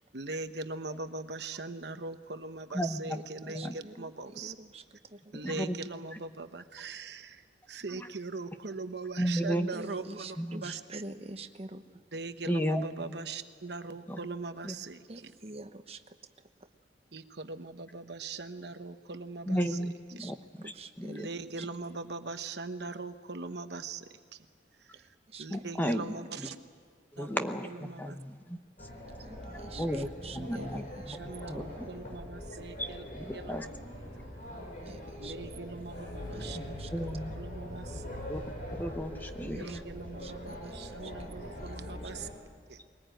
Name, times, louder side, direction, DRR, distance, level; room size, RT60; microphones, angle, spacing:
voice 1, 0.1-4.5 5.3-10.4 10.6-10.8 12.1-15.3 17.1-19.8 20.1-20.2 21.1-24.1 24.3-24.5 24.8-26.6 27.2-28.2 29.7-30.1 30.4-30.8 31.2-33.7 35.2-36.6 37.0-38.2 39.4-42.3 42.7-42.8, right 3 dB, 65° right, 9 dB, 1.1 m, -41 dB
voice 2, 2.7-3.2 3.5-3.7 5.3-5.8 9.2-9.7 10.4-10.6 12.5-12.8 14.1-14.2 14.6-14.8 19.5-20.3 21.0-21.3 25.5-26.0 27.1-28.6 29.8-31.7 32.8-32.9 33.1-33.7 36.5-37.4 38.3-38.4 38.7-39.8, equal, 10° left, 7 dB, 0.9 m, -33 dB
voice 3, 3.4-5.5 9.7-11.8 15.1-16.2 16.6-16.7 20.1-20.3 20.6-21.3 21.6-21.7 24.9-25.6 26.0-26.5 29.2-31.9 34.8-35.4 36.3-36.9 39.5-39.8 40.2-41.1 41.5-41.8, right 3 dB, 35° right, 8 dB, 1.1 m, -47 dB
sound 1, 28.8-42.3, equal, 45° left, 6.3 m, -42 dB
22.0 x 19.5 x 9.1 m, 2.1 s
head